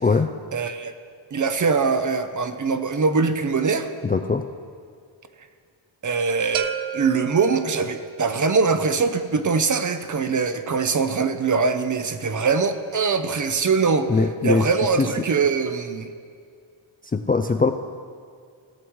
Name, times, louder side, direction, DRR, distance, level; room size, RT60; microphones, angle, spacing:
voice 1, 0.5-0.9 1.3-3.9 6.0-16.1, right 4 dB, 40° right, 9 dB, 0.7 m, -22 dB
voice 2, 4.0-4.4 14.1-14.6 17.3-17.7, left 4 dB, 20° left, 5 dB, 0.3 m, -20 dB
sound 1, 6.5-8.4, right 9 dB, 75° right, 0.6 m, -32 dB
17.5 x 7.8 x 3.1 m, 2.2 s
wide cardioid pair, 100°, 47 cm